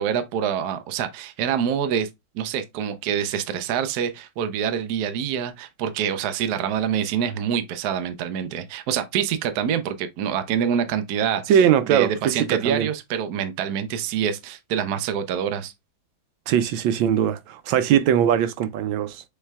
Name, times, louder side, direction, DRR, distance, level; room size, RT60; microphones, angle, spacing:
voice 1, 0.0-2.1 2.3-11.6 11.9-15.7, right 8 dB, 70° right, 1.0 m, -26 dB
voice 2, 11.5-12.9 16.5-19.2, right 9 dB, 90° right, 1.3 m, -21 dB
6.5 x 3.1 x 2.3 m
omnidirectional pair, 2.1 m